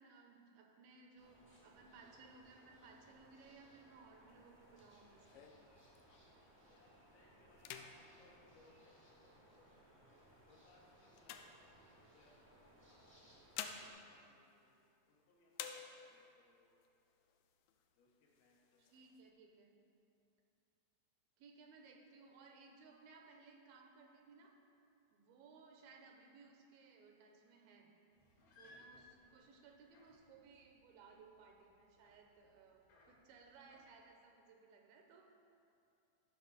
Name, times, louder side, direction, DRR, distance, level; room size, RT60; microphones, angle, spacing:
voice 1, 0.0-5.5 18.8-19.7 21.4-24.6 25.1-27.9 28.5-35.3, right 4 dB, 80° right, 2 dB, 2.5 m, -61 dB
Sand Martins, 1.2-13.9, right 1 dB, 35° right, 0.4 m, -66 dB
sound 1, 4.3-6.5 6.9-7.2 7.5-9.4 10.1-12.3 13.1-15.2 15.5-16.4 16.8-16.9 17.2-17.9 18.3-19.2, left 8 dB, 85° left, 1.9 m, -52 dB
voice 2, 6.3-10.1 10.5-14.7 15.1-16.9 18.0-19.1 29.2-29.6, left 2 dB, 70° left, -4 dB, 3.2 m, -71 dB
sound 2, 28.1-33.9, left 1 dB, 55° left, 2.3 m, -67 dB
12.5 x 6.1 x 4.0 m, 2.6 s
omnidirectional pair, 4.5 m